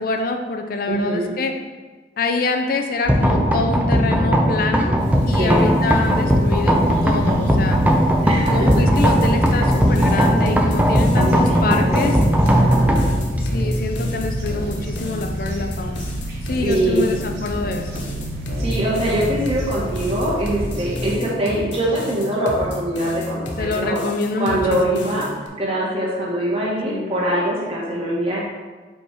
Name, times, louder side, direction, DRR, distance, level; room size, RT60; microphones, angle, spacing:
voice 1, 0.0-1.6 2.2-5.0 5.3-7.8 8.5-12.2 13.4-16.1 16.4-18.0 23.6-25.2 26.8-27.2, left 3 dB, 50° left, 4 dB, 0.5 m, -25 dB
voice 2, 0.9-1.3 5.3-5.6 8.2-8.7 9.5-9.7 11.2-12.3 12.5-13.1 16.6-17.1 18.6-24.0 24.4-25.2 25.6-28.4, right 1 dB, 30° right, -5 dB, 1.7 m, -23 dB
sound 1, 3.1-16.9, equal, 10° right, 0.5 m, -19 dB
sound 2, 5.0-21.2, equal, 70° right, 1.7 m, -30 dB
sound 3, 8.5-25.5, left 1 dB, 85° left, 1.0 m, -32 dB
5.3 x 4.4 x 4.8 m, 1.3 s
head